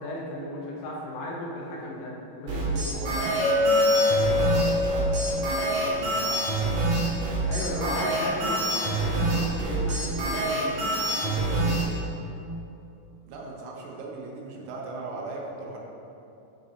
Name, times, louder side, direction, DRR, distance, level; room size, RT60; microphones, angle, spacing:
voice 1, 0.0-2.1 2.4-2.9 7.5-11.7, left 1 dB, 85° left, -3 dB, 3.4 m, -35 dB
sound 1, 2.5-11.8, right 2 dB, 55° right, 2.5 m, -26 dB
voice 2, 2.9-7.1 7.6-8.1 13.3-15.8, right 2 dB, 80° right, -2 dB, 3.3 m, -39 dB
Chink clink, 3.4-7.6, left 2 dB, 55° left, 2.2 m, -26 dB
10.0 x 3.9 x 4.1 m, 2.8 s
omnidirectional pair, 5.9 m